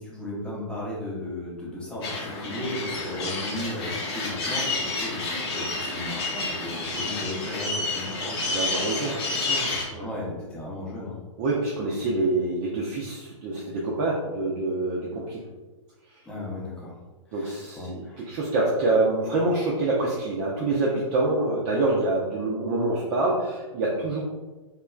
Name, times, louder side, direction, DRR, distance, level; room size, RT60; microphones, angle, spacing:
voice 1, 0.0-8.1 10.0-11.2 16.2-17.0 17.3-18.2, left 1 dB, 5° left, -6 dB, 0.7 m, -35 dB
sound 1, 2.0-9.8, left 3 dB, 50° left, 0.8 m, -30 dB
voice 2, 8.2-10.1 11.4-15.4 16.1-16.2 17.3-24.2, right 2 dB, 30° right, -4 dB, 0.4 m, -26 dB
2.9 x 2.2 x 2.3 m, 1.2 s
hypercardioid pair, 130°, 17 cm